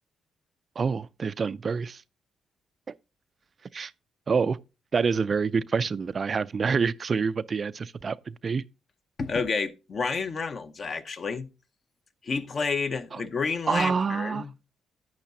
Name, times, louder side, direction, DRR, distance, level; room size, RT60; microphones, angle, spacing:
voice 1, 0.8-2.0 3.7-3.9 4.3-4.6 4.9-8.6 13.7-14.4, right 5 dB, 40° right, 0.3 m, -27 dB
voice 2, 9.2-11.5 12.2-14.5, left 4 dB, 45° left, 0.8 m, -30 dB
10.0 x 9.2 x 2.7 m
cardioid pair, 90°, 0 cm